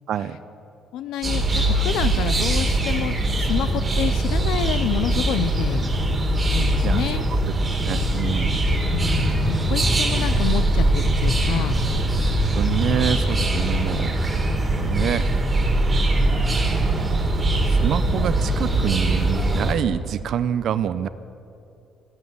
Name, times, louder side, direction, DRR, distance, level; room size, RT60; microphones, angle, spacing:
voice 1, 0.9-5.9 6.5-7.2 8.9-11.8, left 11 dB, 80° left, 12 dB, 0.5 m, -28 dB
sound 1, 1.2-19.8, right 1 dB, 20° right, 2.0 m, -21 dB
voice 2, 7.9-8.6 12.5-14.1 14.8-15.3 16.1-16.4 17.7-21.1, right 9 dB, 55° right, 13 dB, 0.5 m, -26 dB
12.0 x 11.5 x 9.4 m, 2.8 s
cardioid pair, 140°, 0 cm